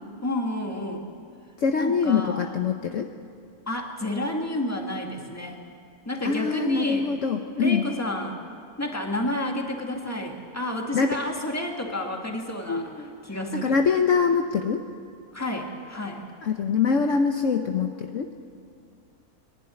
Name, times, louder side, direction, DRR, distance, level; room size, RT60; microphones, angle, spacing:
voice 1, 0.2-1.1 1.8-2.5 3.7-5.6 6.1-7.1 7.6-8.4 8.8-13.8 15.3-16.2, left 1 dB, 10° left, 1 dB, 2.0 m, -30 dB
voice 2, 1.6-3.1 6.2-7.9 10.9-11.2 12.7-13.1 13.5-14.9 16.4-18.3, left 5 dB, 60° left, 5 dB, 1.2 m, -24 dB
23.5 x 12.0 x 9.7 m, 2.3 s
omnidirectional pair, 1.6 m